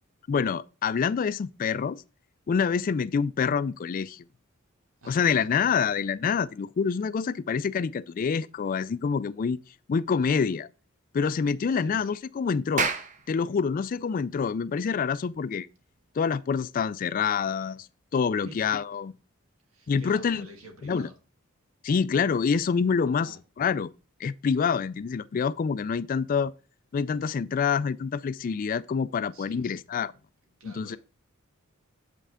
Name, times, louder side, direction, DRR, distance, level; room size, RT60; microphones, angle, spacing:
voice 1, 0.3-2.0 2.5-4.2 5.1-9.6 9.9-10.7 11.1-12.9 13.3-15.7 16.2-17.9 18.1-19.1 19.9-20.5 20.8-21.1 21.8-23.9 24.2-26.5 26.9-30.1 30.6-31.0, left 6 dB, 40° left, 0.3 m, -26 dB
voice 2, 5.0-5.5 5.8-5.9 11.7-12.0 18.4-18.7 19.7-21.1 23.1-23.4 29.3-29.7 30.6-31.0, right 1 dB, 85° right, 1.6 m, -48 dB
Clapping, 12.6-17.4, right 5 dB, 35° right, 0.7 m, -35 dB
7.3 x 5.5 x 3.6 m
head